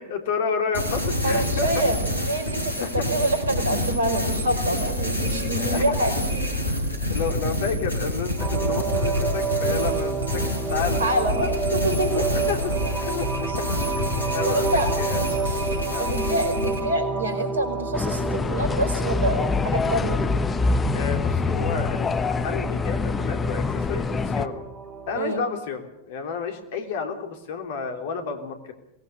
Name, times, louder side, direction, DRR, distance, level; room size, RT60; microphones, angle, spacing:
voice 1, 0.0-1.7 2.8-3.1 5.6-5.8 7.1-11.0 12.1-12.7 13.0-13.7 14.3-15.2 15.9-16.2 20.9-24.6 25.1-28.7, left 5 dB, 55° left, 5 dB, 3.3 m, -31 dB
sound 1, 0.7-16.8, left 1 dB, 80° left, 4.6 m, -27 dB
voice 2, 1.2-6.2 11.0-11.5 11.7-12.2 13.5-13.6 14.5-14.9 16.0-20.2 25.1-25.5, right 1 dB, 70° right, 6 dB, 4.8 m, -26 dB
sound 2, 8.4-25.2, right 4 dB, 15° right, 2.4 m, -30 dB
sound 3, 17.9-24.5, left 4 dB, 15° left, 1.1 m, -25 dB
23.0 x 19.5 x 6.7 m, 0.82 s
figure-of-eight pair, 90°, 0 cm